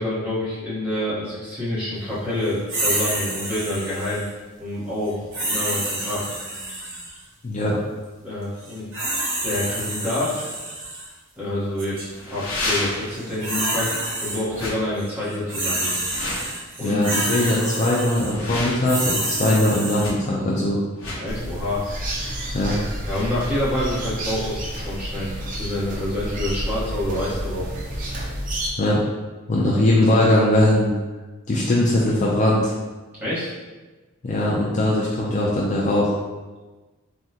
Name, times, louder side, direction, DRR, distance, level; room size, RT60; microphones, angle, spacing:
voice 1, 0.0-4.2 4.6-6.3 8.2-8.9 9.4-10.5 11.4-16.0 16.8-17.0 21.2-21.9 23.1-27.7 33.2-33.5, left 1 dB, 10° right, -10 dB, 0.9 m, -27 dB
sound 1, 2.7-4.3 5.3-7.2 8.6-11.1 11.8-12.0 13.1-14.7 15.0-20.1, right 1 dB, 60° right, 1.0 m, -28 dB
voice 2, 7.4-7.8 16.8-20.8 22.5-22.8 28.8-29.0 29.5-30.9 31.5-32.7 34.2-36.2, left 1 dB, 35° left, -5 dB, 0.4 m, -20 dB
sound 2, 10.2-10.3 12.1-13.2 14.5-14.8 16.0-16.5 18.1-19.0 20.0-20.1 20.9-21.2, left 2 dB, 70° left, 0.8 m, -30 dB
sound 3, 21.3-28.7, right 1 dB, 35° right, 0.4 m, -30 dB
3.6 x 2.2 x 2.8 m, 1.2 s
head